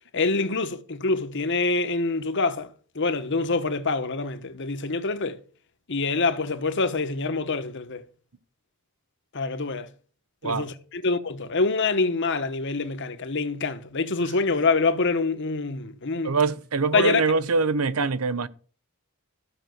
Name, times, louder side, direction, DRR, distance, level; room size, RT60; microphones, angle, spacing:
voice 1, 0.1-2.7 2.9-5.4 5.9-8.0 9.3-9.9 10.4-16.3 16.9-17.2, left 3 dB, 55° left, 1.1 m, -25 dB
voice 2, 16.2-18.5, right 4 dB, 90° right, 0.9 m, -24 dB
14.5 x 6.0 x 7.8 m
head